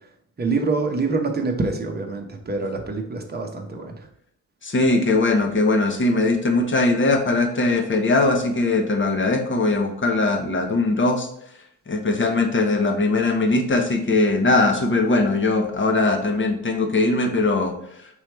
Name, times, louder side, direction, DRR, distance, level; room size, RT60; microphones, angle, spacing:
voice 1, 0.4-4.0, right 3 dB, 20° right, 3 dB, 1.0 m, -25 dB
voice 2, 4.6-11.3 11.9-17.7, left 2 dB, 25° left, 3 dB, 1.0 m, -20 dB
5.4 x 3.1 x 3.2 m, 0.73 s
hypercardioid pair, 50°, 45 cm